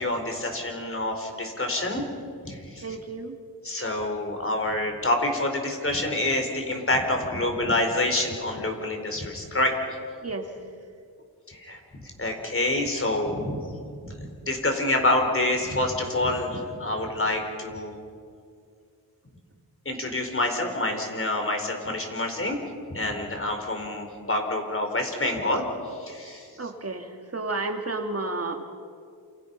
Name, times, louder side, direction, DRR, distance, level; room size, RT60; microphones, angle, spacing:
voice 1, 0.0-2.0 2.4-3.0 3.6-9.7 11.5-13.6 14.0-17.9 19.8-22.6 22.9-26.7, left 1 dB, 35° left, 3 dB, 4.8 m, -27 dB
voice 2, 2.8-3.4 10.2-10.5 26.6-28.6, right 3 dB, 40° right, 5 dB, 2.1 m, -31 dB
28.5 x 28.0 x 5.6 m, 2.3 s
wide cardioid pair, 80°, 37 cm